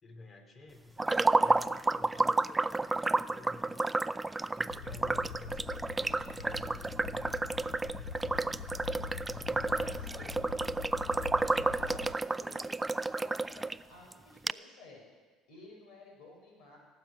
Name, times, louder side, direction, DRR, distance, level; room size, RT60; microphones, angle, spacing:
voice 1, 0.0-8.3 9.2-10.5 11.3-11.6, left 3 dB, 35° left, 6 dB, 2.7 m, -53 dB
sound 1, 1.0-13.8 14.1-14.2 14.5-14.6, right 2 dB, 15° right, 0.4 m, -31 dB
sound 2, 4.7-12.1, left 7 dB, 85° left, 0.9 m, -43 dB
voice 2, 9.6-10.4 11.4-15.0 15.5-16.8, left 3 dB, 65° left, 0 dB, 5.7 m, -53 dB
17.5 x 7.8 x 8.2 m, 1.4 s
hypercardioid pair, 70°, 0 cm